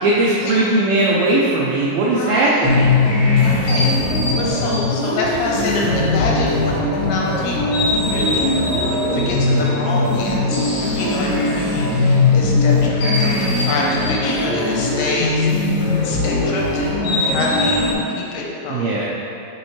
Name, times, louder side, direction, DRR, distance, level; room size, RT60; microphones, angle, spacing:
voice 1, 0.0-3.0 18.7-19.1, right 2 dB, 85° right, -5 dB, 2.1 m, -18 dB
voice 2, 2.1-2.8 3.3-3.9 4.4-10.6 10.9-15.5 16.0-18.9, left 3 dB, 80° left, -3 dB, 3.1 m, -26 dB
sound 1, 2.6-17.9, left 2 dB, 60° left, 2.7 m, -19 dB
sound 2, 3.4-4.8 5.2-8.9 9.2-9.4, right 4 dB, 65° right, 2.5 m, -32 dB
6.9 x 6.6 x 3.2 m, 2.7 s
omnidirectional pair, 5.1 m